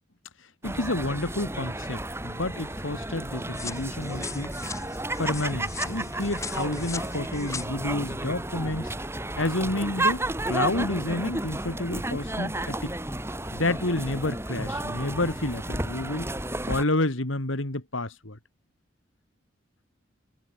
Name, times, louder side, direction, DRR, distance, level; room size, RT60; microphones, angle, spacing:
voice 1, 0.6-4.5 5.2-8.9 9.4-12.9 13.5-16.3 16.7-18.4, left 2 dB, 90° left, 2.8 m, -29 dB
sound 1, 0.6-16.8, right 1 dB, 15° right, 5.8 m, -32 dB
sound 2, 3.5-7.7, left 4 dB, 15° left, 6.2 m, -39 dB
head